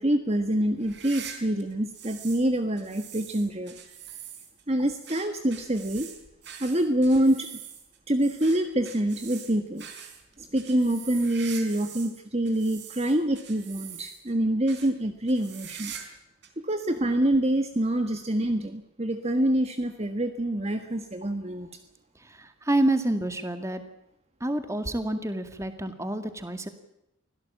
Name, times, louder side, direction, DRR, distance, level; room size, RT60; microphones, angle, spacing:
voice 1, 0.0-3.8 4.7-6.1 6.6-7.5 8.1-9.9 10.4-15.9 16.6-21.8, right 1 dB, 30° right, 7 dB, 1.5 m, -26 dB
sound 1, 0.8-2.5 2.8-12.2 12.5-14.3 14.7-14.9 15.3-16.2 16.4-16.5 17.3-17.4 18.6-18.7, right 8 dB, 55° right, 4.3 m, -44 dB
voice 2, 22.2-23.8 24.4-26.7, right 1 dB, 15° right, 8 dB, 2.1 m, -28 dB
25.0 x 17.0 x 8.7 m, 0.85 s
head